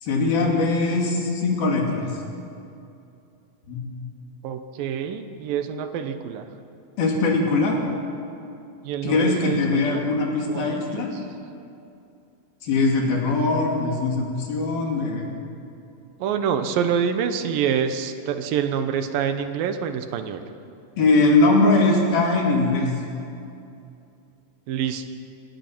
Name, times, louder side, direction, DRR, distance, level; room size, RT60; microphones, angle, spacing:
voice 1, 0.0-2.1 3.7-3.8 7.0-7.8 9.0-11.1 12.6-15.3 21.0-22.9, left 3 dB, 90° left, -1 dB, 4.8 m, -21 dB
voice 2, 4.4-6.6 8.8-10.0 10.5-11.3 16.2-20.5 24.7-25.1, right 7 dB, 80° right, 9 dB, 2.7 m, -27 dB
26.5 x 18.0 x 6.0 m, 2.6 s
omnidirectional pair, 4.1 m